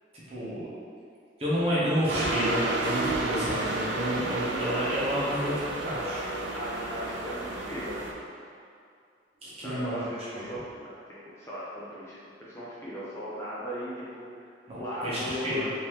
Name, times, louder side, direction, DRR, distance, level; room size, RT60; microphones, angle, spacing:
voice 1, 0.1-0.7 1.4-5.5 5.8-6.2 9.4-10.0 10.4-10.5 14.7-15.6, equal, 35° right, -9 dB, 1.0 m, -30 dB
sound 1, 2.1-8.1, right 2 dB, 75° right, 0.5 m, -31 dB
voice 2, 6.5-8.0 9.6-14.3 14.7-15.7, left 1 dB, 15° left, -9 dB, 0.6 m, -37 dB
3.7 x 2.8 x 3.1 m, 2.3 s
head